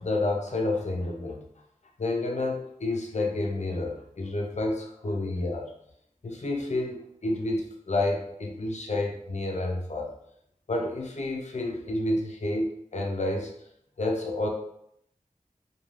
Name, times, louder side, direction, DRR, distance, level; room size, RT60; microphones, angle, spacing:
voice 1, 0.0-1.5 2.0-5.7 6.2-10.1 10.7-13.6 14.0-14.5, left 2 dB, 60° left, 0 dB, 0.6 m, -29 dB
2.5 x 2.3 x 3.2 m, 0.73 s
wide cardioid pair, 60°, 14 cm